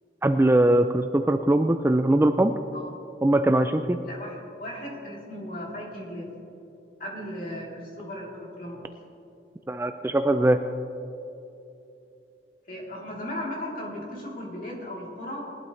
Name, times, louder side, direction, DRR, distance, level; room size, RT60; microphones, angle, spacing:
voice 1, 0.2-2.5 3.2-4.0 9.7-10.6, right 1 dB, 15° right, 8 dB, 0.3 m, -21 dB
voice 2, 4.1-6.3 7.0-8.9 12.7-15.5, left 1 dB, 50° left, -4 dB, 3.3 m, -36 dB
20.0 x 12.0 x 3.2 m, 2.8 s
head